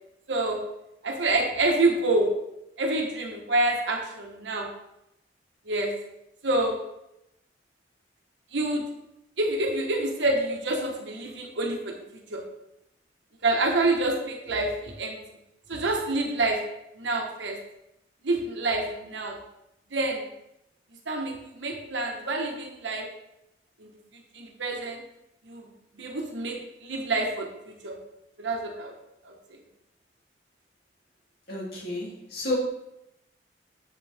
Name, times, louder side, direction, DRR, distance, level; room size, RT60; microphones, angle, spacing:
voice 1, 0.3-0.6 1.0-2.3 2.8-4.7 5.6-5.9 6.4-6.8 8.5-8.8 9.4-12.4 13.4-15.2 15.7-16.6 16.9-17.6 18.2-19.4 19.9-20.3 21.1-23.1 23.8-23.9 24.3-25.0 25.4-28.0 28.4-28.9 29.2-29.3, right 2 dB, 85° right, 1 dB, 1.4 m, -27 dB
voice 2, 31.5-32.6, left 2 dB, 55° left, -5 dB, 2.8 m, -31 dB
7.4 x 6.4 x 3.5 m, 0.86 s
head